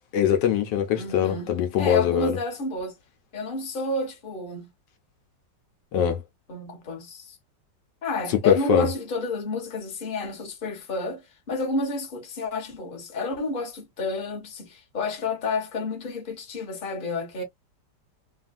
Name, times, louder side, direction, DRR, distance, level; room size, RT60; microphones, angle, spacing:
voice 1, 0.1-2.4 5.9-6.2 8.3-8.9, left 8 dB, 75° left, 1.3 m, -22 dB
voice 2, 0.9-1.5 1.8-2.9 3.3-4.7 6.5-7.4 8.0-17.4, left 3 dB, 35° left, 1.1 m, -30 dB
3.1 x 2.4 x 2.4 m
omnidirectional pair, 2.0 m